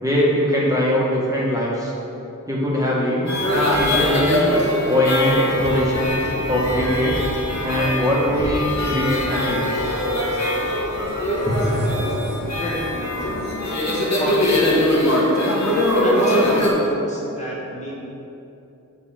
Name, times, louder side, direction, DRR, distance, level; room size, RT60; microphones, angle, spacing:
voice 1, 0.0-1.9 2.5-3.3 3.8-4.6 4.9-6.2 6.5-7.2 7.6-9.9 11.5-11.7, equal, 10° right, -6 dB, 1.5 m, -21 dB
sound 1, 3.3-16.7, left 1 dB, 55° left, 1.5 m, -22 dB
sound 2, 5.5-13.6, equal, 70° right, 1.6 m, -34 dB
voice 2, 11.6-13.2 14.1-15.0 16.0-17.9, equal, 20° left, -6 dB, 1.5 m, -29 dB
6.7 x 5.4 x 4.3 m, 2.9 s
wide cardioid pair, 65°, 33 cm